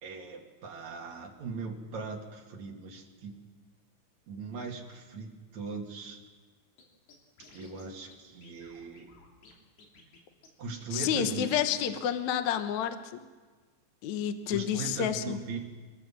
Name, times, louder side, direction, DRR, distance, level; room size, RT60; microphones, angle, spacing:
voice 1, 0.0-3.4 4.3-6.2 7.5-9.1 10.6-11.5 14.5-15.6, right 4 dB, 45° right, 0 dB, 2.9 m, -39 dB
Scratching (performance technique), 6.8-6.9 7.1-7.8 8.1-8.2 8.4-9.5 9.8-10.2 10.4-10.5 10.8-10.9 11.1-11.6, left 4 dB, 60° left, 4.8 m, -55 dB
voice 2, 10.9-13.2 14.0-15.4, left 9 dB, 90° left, 8 dB, 1.6 m, -30 dB
25.5 x 19.5 x 7.5 m, 1.4 s
omnidirectional pair, 5.3 m